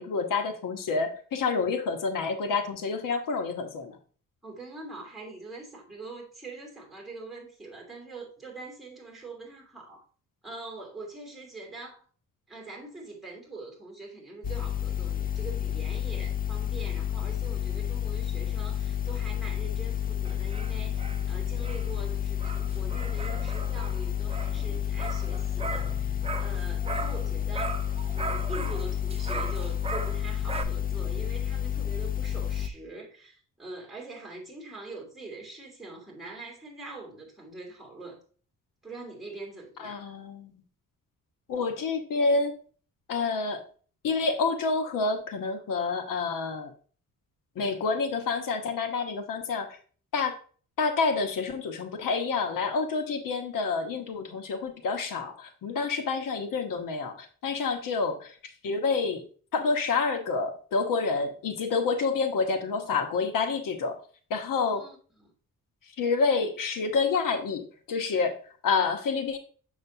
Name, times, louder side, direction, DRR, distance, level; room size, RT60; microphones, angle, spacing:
voice 1, 0.0-4.0 39.8-40.5 41.5-42.5 43.1-43.6 44.0-46.7 47.6-49.8 50.1-50.3 50.8-58.3 58.6-59.2 59.5-64.0 64.3-64.8 66.0-68.4 68.6-69.4, left 4 dB, 85° left, 1.1 m, -28 dB
voice 2, 4.4-10.0 10.4-12.0 12.5-38.2 38.8-40.1 62.1-62.2 64.6-65.3, right 3 dB, ahead, 2.8 m, -43 dB
sound 1, 14.4-32.7, left 10 dB, 30° left, 0.5 m, -30 dB
sound 2, 20.2-27.3 27.5-30.6, right 4 dB, 20° right, 0.6 m, -38 dB
6.9 x 6.3 x 2.7 m
wide cardioid pair, 145°, 32 cm